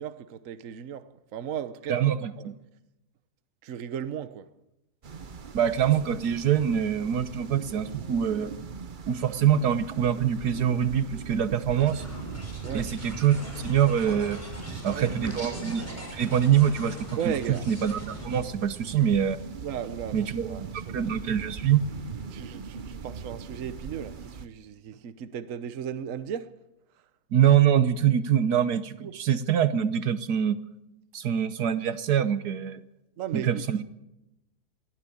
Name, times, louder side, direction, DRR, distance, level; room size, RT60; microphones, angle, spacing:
voice 1, 0.0-2.5 3.6-4.5 12.6-12.9 14.7-15.3 17.2-17.7 19.6-21.2 22.3-26.5 29.0-29.2 33.2-33.8, right 8 dB, 55° right, 1.2 m, -36 dB
voice 2, 1.9-2.5 5.5-8.5 9.1-12.0 12.7-14.4 14.8-15.8 16.1-17.0 17.2-17.3 17.7-19.4 20.1-21.8 27.3-30.6 31.1-32.8 33.3-33.8, right 9 dB, 75° right, 1.5 m, -24 dB
sound 1, 5.0-24.5, right 5 dB, 40° right, 0.8 m, -41 dB
sound 2, 11.8-18.4, right 1 dB, 10° left, 6.3 m, -40 dB
22.0 x 15.5 x 8.6 m
omnidirectional pair, 1.7 m